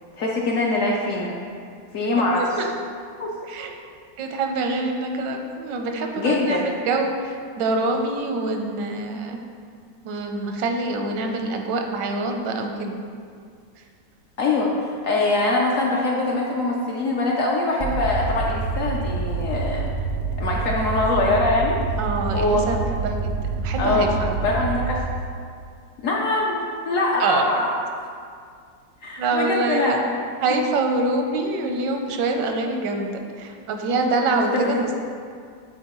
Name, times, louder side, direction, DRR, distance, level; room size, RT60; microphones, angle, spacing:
voice 1, 0.2-1.3 1.9-2.4 3.2-3.3 6.2-6.6 14.4-19.8 20.4-21.8 22.3-22.6 23.8-24.2 24.4-25.0 26.0-27.7 29.0-30.1 34.3-34.8, left 2 dB, 65° left, -2 dB, 0.8 m, -23 dB
voice 2, 2.4-2.7 3.5-3.7 4.2-9.4 10.0-13.0 22.0-24.4 27.2-27.5 29.2-30.0 30.4-34.9, right 3 dB, 85° right, 3 dB, 1.3 m, -25 dB
sound 1, 17.8-25.1, right 4 dB, 70° right, 0.7 m, -27 dB
8.3 x 3.9 x 3.0 m, 2.2 s
omnidirectional pair, 1.9 m